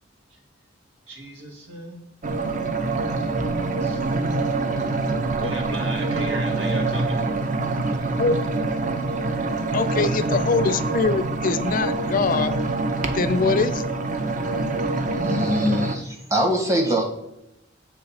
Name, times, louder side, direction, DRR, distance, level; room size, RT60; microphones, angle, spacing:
voice 1, 1.1-2.1 3.2-4.7 5.4-7.4 9.0-9.2, right 1 dB, 70° right, 1 dB, 2.0 m, -36 dB
sound 1, 2.2-16.0, right 3 dB, 40° right, 0.7 m, -25 dB
voice 2, 8.1-8.4 9.7-12.5 13.1-13.9, left 4 dB, 45° left, 12 dB, 0.4 m, -23 dB
voice 3, 15.1-17.0, equal, 15° right, 0 dB, 1.3 m, -23 dB
7.7 x 3.3 x 5.7 m, 0.87 s
head